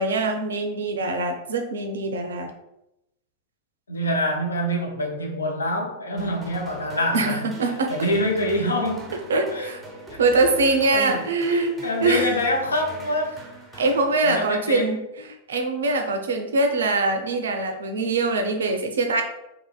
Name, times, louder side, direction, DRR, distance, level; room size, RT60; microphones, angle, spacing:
voice 1, 0.0-2.5 7.1-8.1 9.3-9.8 10.2-11.7 12.0-12.3 13.8-19.2, right 3 dB, 65° right, 0.4 m, -23 dB
voice 2, 3.9-7.5 7.9-9.1 9.5-9.7 10.1-10.2 10.9-13.4 13.7-13.8 14.2-14.9, left 1 dB, 75° left, 0.4 m, -26 dB
sound 1, 6.2-14.8, right 2 dB, 10° right, 0.6 m, -42 dB
2.9 x 2.5 x 2.2 m
figure-of-eight pair, 90°, 0 cm